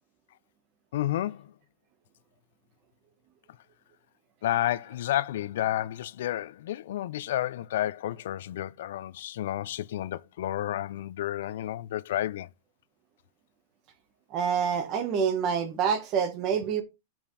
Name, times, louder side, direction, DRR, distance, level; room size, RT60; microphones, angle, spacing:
voice 1, 0.9-1.5 4.4-12.5, left 13 dB, 65° left, 0.5 m, -31 dB
voice 2, 14.3-16.8, right 7 dB, 30° right, 1.3 m, -27 dB
6.9 x 5.7 x 4.1 m
supercardioid pair, 170°, 0 cm